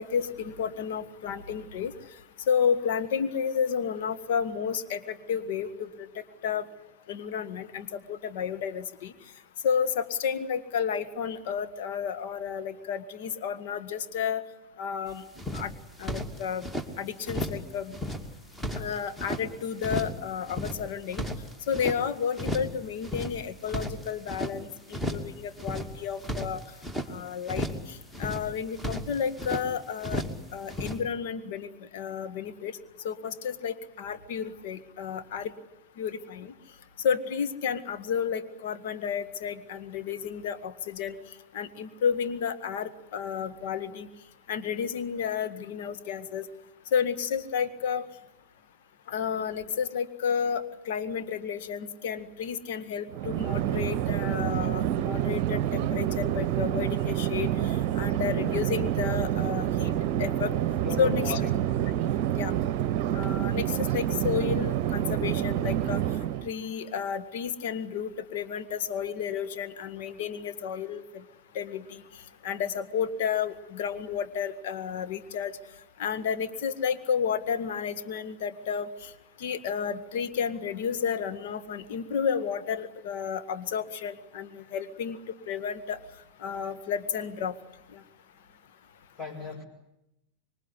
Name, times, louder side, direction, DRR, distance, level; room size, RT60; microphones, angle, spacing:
voice 1, 0.0-1.9 2.5-6.1 6.4-6.6 7.1-9.1 9.6-14.4 14.8-15.2 15.5-15.7 16.0-16.7 17.0-17.9 18.8-21.2 21.7-26.6 27.1-30.2 30.5-31.7 31.9-32.7 33.0-35.5 36.0-36.5 37.0-41.2 41.5-44.1 44.5-46.5 46.9-48.0 49.1-57.5 58.0-59.9 60.2-60.5 61.0-61.4 62.4-62.5 63.1-66.0 66.4-71.0 71.5-72.0 72.4-75.5 76.0-78.9 79.4-85.2 85.5-86.0 86.4-87.6 87.9-88.0, left 7 dB, 50° left, 10 dB, 1.9 m, -31 dB
sound 1, 15.1-15.2 15.3-16.9 17.2-17.7 17.9-19.4 19.8-20.2 20.5-22.0 22.3-22.8 23.0-24.5 24.9-25.3 25.6-27.1 27.5-27.9 28.1-29.6 30.0-30.4 30.7-31.0, left 1 dB, 5° left, 2.6 m, -34 dB
Chatter / Fixed-wing aircraft airplane, 53.1-66.5, right 11 dB, 45° right, 0.9 m, -28 dB
voice 2, 60.4-61.7 89.2-89.6, left 4 dB, 30° left, -4 dB, 6.2 m, -38 dB
26.0 x 23.0 x 9.9 m, 0.86 s
figure-of-eight pair, 90°, 0 cm